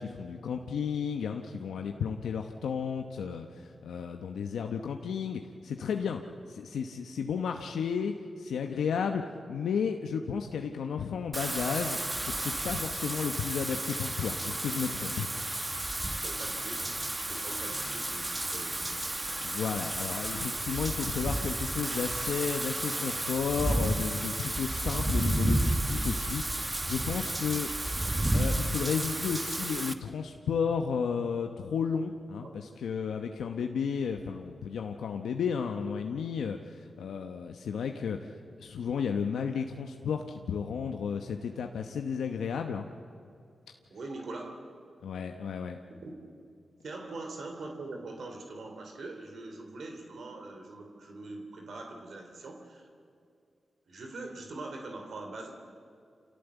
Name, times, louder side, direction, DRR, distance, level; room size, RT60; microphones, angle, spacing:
voice 1, 0.0-6.2 6.5-15.3 19.4-27.7 28.3-38.2 38.6-42.9 45.0-45.8, left 6 dB, 85° left, 4 dB, 0.9 m, -33 dB
Wind / Rain, 11.3-29.9, right 1 dB, 20° right, 1.3 m, -32 dB
voice 2, 16.2-16.8 17.2-19.0 19.3-19.6 32.4-32.5 33.5-33.7 43.9-44.6 45.2-45.3 45.6-45.7 46.0-46.1 46.8-52.9 53.9-55.5, right 2 dB, 75° right, 4 dB, 3.1 m, -43 dB
26.5 x 17.0 x 8.2 m, 2.4 s
cardioid pair, 45°, 0 cm